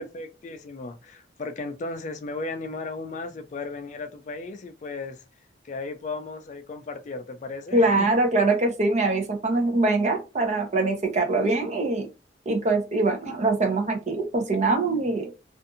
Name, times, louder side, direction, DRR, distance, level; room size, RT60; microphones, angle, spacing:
voice 1, 0.0-5.2 5.6-8.1, left 3 dB, 45° left, 0.4 m, -35 dB
voice 2, 7.7-12.1 12.5-15.3, right 2 dB, 40° right, 0.7 m, -23 dB
2.6 x 2.5 x 2.5 m
head